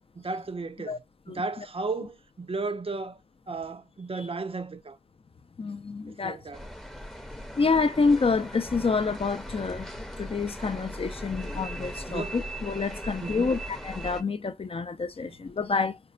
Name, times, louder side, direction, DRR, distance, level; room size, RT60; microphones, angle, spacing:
voice 1, 0.2-0.9 1.3-3.2 3.5-5.0 6.2-6.6 12.1-12.4 13.2-13.5, right 3 dB, 45° right, 0.5 m, -34 dB
voice 2, 5.6-6.4 7.6-16.0, left 4 dB, 45° left, 0.4 m, -28 dB
sound 1, 6.5-14.2, equal, 5° left, 0.6 m, -39 dB
5.1 x 2.1 x 2.4 m
wide cardioid pair, 55°, 14 cm